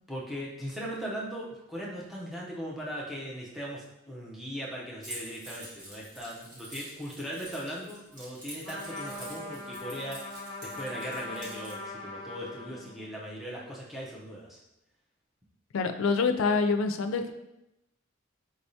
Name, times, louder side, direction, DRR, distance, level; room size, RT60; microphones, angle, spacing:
voice 1, 0.1-14.6, equal, ahead, -6 dB, 0.7 m, -39 dB
Keys jangling, 5.0-11.7, equal, 40° right, 1.5 m, -46 dB
Trumpet, 8.6-13.2, left 2 dB, 25° left, 0.8 m, -41 dB
voice 2, 15.7-17.3, left 4 dB, 85° left, 7 dB, 0.4 m, -26 dB
4.9 x 3.4 x 2.7 m, 0.90 s
head